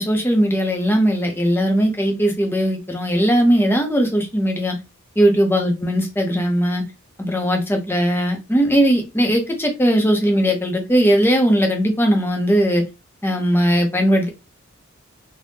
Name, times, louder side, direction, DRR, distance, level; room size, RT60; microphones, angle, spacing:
voice 1, 0.0-4.7 5.2-6.8 7.2-12.8 13.2-14.3, equal, 10° left, 0.7 m, -18 dB
3.4 x 2.2 x 2.7 m
head